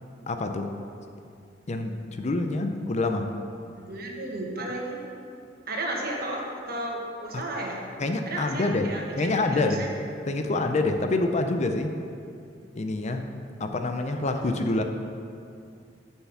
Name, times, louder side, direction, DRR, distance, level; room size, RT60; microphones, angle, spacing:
voice 1, 0.3-0.7 1.7-3.3 8.0-8.9 9.2-9.9 10.3-11.9 12.8-13.3 13.6-14.8, left 2 dB, 40° left, 6 dB, 0.5 m, -26 dB
voice 2, 3.7-5.0 5.7-7.8 8.3-9.9, right 1 dB, 55° right, -1 dB, 1.4 m, -33 dB
7.2 x 6.8 x 5.7 m, 2.5 s
head